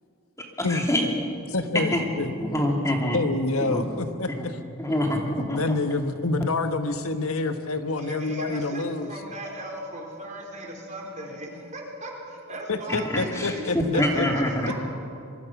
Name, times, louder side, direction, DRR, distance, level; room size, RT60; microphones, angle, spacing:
voice 1, 0.6-1.1 1.9-2.1 2.4-3.2 3.6-3.8 4.3-4.4 4.8-5.6 13.0-14.7, left 1 dB, 15° left, 0 dB, 2.9 m, -26 dB
voice 2, 1.5-2.3 3.1-4.6 5.5-9.1 12.7-14.3, left 3 dB, 85° left, 7 dB, 1.4 m, -27 dB
voice 3, 8.0-13.7 13.9-14.7, right 1 dB, 35° right, 0 dB, 4.3 m, -37 dB
25.0 x 23.5 x 6.1 m, 2.6 s
head